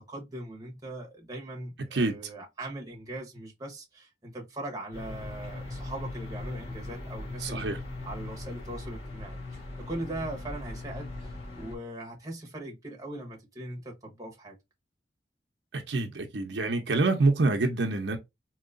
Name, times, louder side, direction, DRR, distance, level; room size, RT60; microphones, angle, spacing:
voice 1, 0.0-7.6 8.0-14.6, right 1 dB, 20° right, 1.2 m, -40 dB
sound 1, 4.9-11.8, left 2 dB, 35° left, 1.6 m, -39 dB
voice 2, 7.4-7.8 15.7-18.2, right 3 dB, 75° right, 0.7 m, -26 dB
3.9 x 2.9 x 2.5 m
head